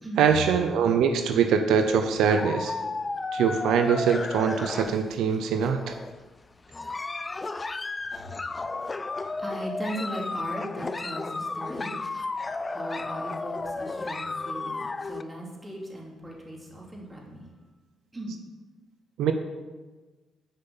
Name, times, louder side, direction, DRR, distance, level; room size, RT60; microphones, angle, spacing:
voice 1, 0.2-2.8 3.3-5.9 19.2-19.3, right 6 dB, 85° right, 7 dB, 0.7 m, -23 dB
sound 1, 1.8-5.3 5.6-6.2 6.7-15.2, left 3 dB, 25° left, 0.5 m, -33 dB
voice 2, 9.4-11.9 12.7-17.4 18.1-18.3, right 1 dB, 20° right, -2 dB, 3.0 m, -38 dB
10.5 x 5.7 x 7.1 m, 1.3 s
cardioid pair, 90°, 0 cm